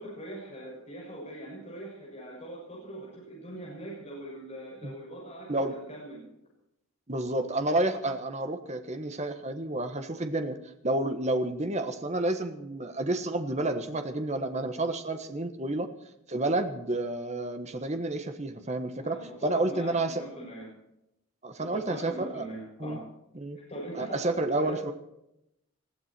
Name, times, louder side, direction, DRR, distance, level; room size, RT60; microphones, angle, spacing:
voice 1, 0.0-6.3 19.0-20.7 21.6-23.0 23.7-24.8, right 1 dB, 30° left, -3 dB, 6.5 m, -41 dB
voice 2, 7.1-10.6 10.8-15.9 16.3-20.2 21.4-22.4 22.8-23.0 23.3-23.6 23.9-24.9, right 2 dB, 30° right, 7 dB, 1.4 m, -30 dB
20.5 x 14.5 x 4.5 m, 0.82 s
head